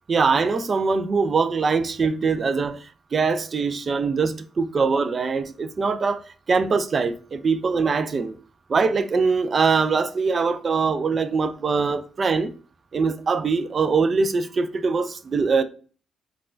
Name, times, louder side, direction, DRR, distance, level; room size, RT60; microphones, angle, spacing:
voice 1, 0.1-6.2 6.5-8.3 8.7-12.5 12.9-15.6, right 4 dB, 40° right, 0.3 m, -22 dB
3.9 x 2.3 x 2.5 m
cardioid pair, 90°, 0 cm